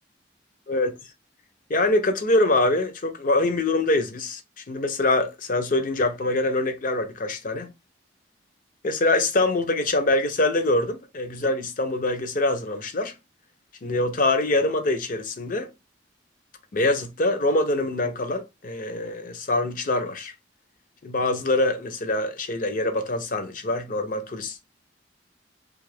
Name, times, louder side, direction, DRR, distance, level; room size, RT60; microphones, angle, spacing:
voice 1, 0.7-1.0 1.7-4.4 4.7-7.7 8.8-13.1 13.8-15.7 16.7-20.3 21.0-24.6, left 2 dB, 50° left, 0.6 m, -24 dB
2.7 x 2.4 x 3.2 m
head